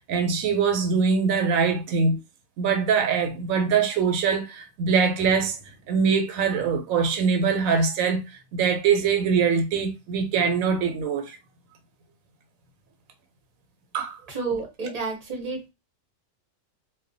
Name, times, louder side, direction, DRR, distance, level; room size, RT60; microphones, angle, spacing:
voice 1, 0.1-2.2 2.6-5.6 5.9-8.2 8.5-11.4 13.9-14.2, right 5 dB, 85° right, 1.0 m, -23 dB
voice 2, 14.3-15.7, right 4 dB, 40° right, 0.6 m, -30 dB
2.3 x 2.1 x 2.5 m
omnidirectional pair, 1.4 m